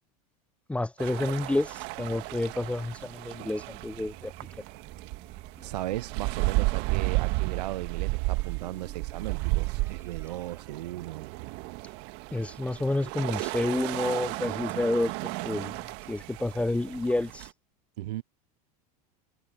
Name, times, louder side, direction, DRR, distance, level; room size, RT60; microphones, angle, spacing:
voice 1, 0.7-4.3 12.3-15.1 15.4-15.7 16.1-17.5, left 2 dB, 5° left, 0.5 m, -29 dB
sound 1, 1.0-17.5, right 23 dB, 60° right, 1.6 m, -33 dB
Truck, 1.4-7.9, right 9 dB, 35° right, 4.4 m, -54 dB
voice 2, 5.6-11.3 18.0-18.2, right 15 dB, 85° right, 0.4 m, -36 dB
sound 2, 8.3-11.9, right 3 dB, 15° right, 4.9 m, -58 dB
hypercardioid pair, 100°, 20 cm